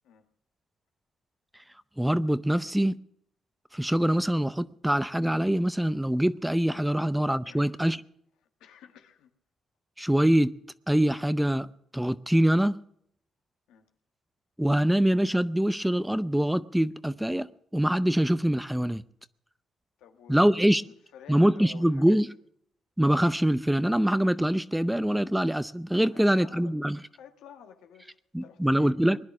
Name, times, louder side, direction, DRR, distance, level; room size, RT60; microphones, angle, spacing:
voice 1, 2.0-3.0 3.7-8.0 10.0-10.5 10.9-11.7 11.9-12.8 14.6-17.5 17.7-19.0 20.3-20.8 21.3-22.3 23.0-27.0 28.3-29.2, right 1 dB, 5° right, 0.6 m, -24 dB
voice 2, 8.6-9.3 13.7-13.9 20.0-22.2 26.0-26.7 27.1-29.2, left 8 dB, 85° left, 1.7 m, -51 dB
20.0 x 10.5 x 6.1 m
supercardioid pair, 65°, 0 cm